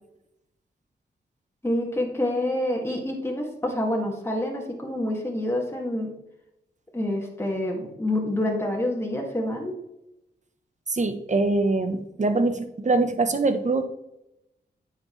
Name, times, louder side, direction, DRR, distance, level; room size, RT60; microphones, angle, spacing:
voice 1, 1.6-6.1 6.9-9.8, left 1 dB, 15° left, -1 dB, 2.2 m, -27 dB
voice 2, 10.9-13.8, right 3 dB, 40° right, 9 dB, 1.1 m, -23 dB
9.4 x 6.7 x 3.3 m, 0.85 s
cardioid pair, 70°, 19 cm